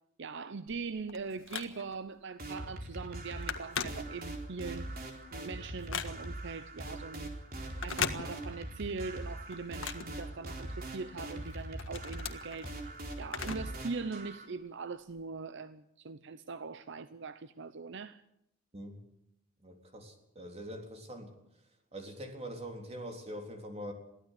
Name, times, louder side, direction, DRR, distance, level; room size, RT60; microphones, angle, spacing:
voice 1, 0.2-4.9 5.3-7.3 7.8-12.9 13.2-18.2, right 4 dB, 60° right, 0.7 m, -41 dB
Telephone, 0.7-2.1 2.6-2.8 3.1-4.6 5.0-6.5 7.7-8.8 9.1-10.9 11.3-13.8 14.1-14.2 15.1-15.2, left 6 dB, 70° left, 1.6 m, -39 dB
sound 1, 2.4-14.5, right 1 dB, 45° right, 4.1 m, -42 dB
voice 2, 19.6-21.3 21.9-23.9, equal, 30° right, 3.6 m, -43 dB
23.0 x 15.5 x 8.3 m
head